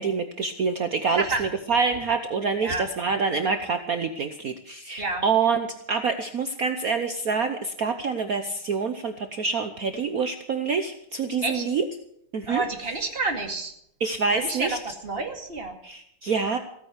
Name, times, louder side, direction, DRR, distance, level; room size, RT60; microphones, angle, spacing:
voice 1, 0.0-11.8 12.3-12.6 14.0-14.8 15.8-16.6, right 5 dB, 55° right, 7 dB, 1.1 m, -26 dB
voice 2, 1.1-1.5 2.6-2.9 5.0-5.2 11.4-11.6 12.5-13.7 14.3-15.7, right 3 dB, 30° right, 4 dB, 2.3 m, -29 dB
16.5 x 9.2 x 8.1 m, 0.72 s
omnidirectional pair, 2.3 m